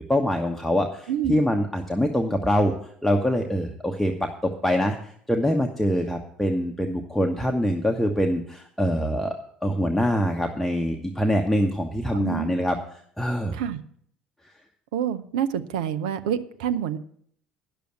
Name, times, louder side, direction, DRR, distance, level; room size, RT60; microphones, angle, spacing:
voice 1, 0.1-2.7 3.0-5.0 5.3-9.4 9.6-13.6, equal, 5° left, 2 dB, 1.1 m, -24 dB
voice 2, 1.1-1.4 12.1-12.6 13.5-13.8 14.9-17.0, right 9 dB, 70° right, 10 dB, 0.7 m, -27 dB
10.5 x 6.9 x 7.8 m, 0.63 s
figure-of-eight pair, 60°, 4 cm